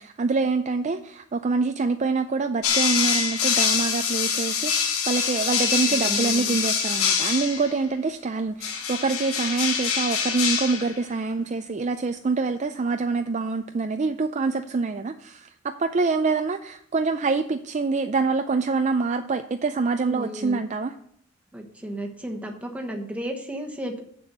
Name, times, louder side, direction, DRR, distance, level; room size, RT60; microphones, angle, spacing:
voice 1, 0.0-20.9, right 4 dB, 30° right, 7 dB, 0.3 m, -25 dB
sound 1, 2.6-7.8 8.6-11.0, left 6 dB, 75° left, 1.3 m, -25 dB
voice 2, 5.9-6.6 20.0-20.6 21.5-24.0, equal, 5° right, 2 dB, 1.0 m, -34 dB
7.7 x 6.9 x 6.6 m, 0.68 s
head